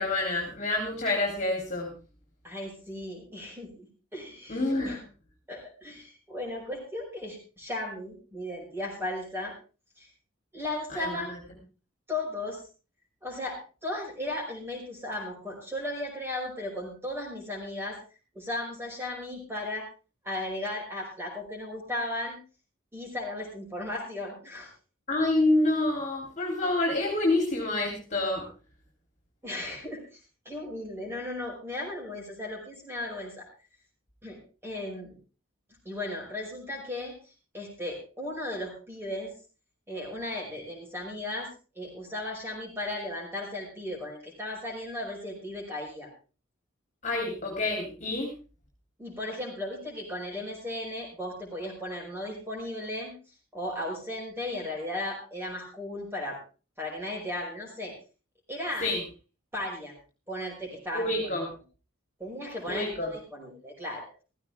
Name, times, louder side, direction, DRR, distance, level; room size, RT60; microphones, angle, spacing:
voice 1, 0.0-1.9 4.5-5.0 10.9-11.4 25.1-28.5 47.0-48.3 58.8-59.0 60.9-61.5 62.7-63.1, left 2 dB, 35° left, 1 dB, 3.5 m, -27 dB
voice 2, 2.4-3.9 4.1-5.0 5.5-9.5 10.0-10.1 10.5-11.3 12.1-12.6 13.2-18.0 18.3-19.8 20.2-22.4 22.9-24.7 29.4-30.2 30.4-33.5 34.2-35.2 35.8-37.1 37.5-39.3 39.9-41.5 41.7-46.1 49.0-53.1 53.5-56.4 56.8-57.9 58.5-58.9 59.5-59.9 60.3-61.3 62.2-64.1, left 1 dB, 10° right, -1 dB, 5.7 m, -36 dB
16.0 x 15.0 x 3.6 m, 0.34 s
head